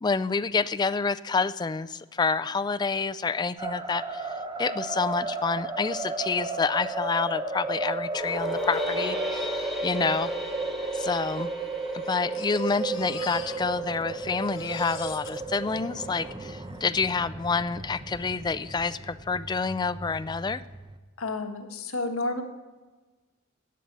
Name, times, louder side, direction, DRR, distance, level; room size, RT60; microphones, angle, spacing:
voice 1, 0.0-10.3 10.9-11.5 11.9-20.6, left 4 dB, 20° left, 12 dB, 0.3 m, -28 dB
sound 1, 3.6-21.0, right 3 dB, 25° right, 0.8 m, -34 dB
sound 2, 8.1-13.4, left 1 dB, ahead, 1.8 m, -36 dB
Crying sobbing, 10.0-10.1 10.3-10.4 11.1-14.0 14.3-16.9 17.7-17.8 18.1-18.2, left 8 dB, 65° left, 1.2 m, -45 dB
voice 2, 21.2-22.4, left 2 dB, 85° left, 5 dB, 1.3 m, -30 dB
15.0 x 5.5 x 9.6 m, 1.3 s
head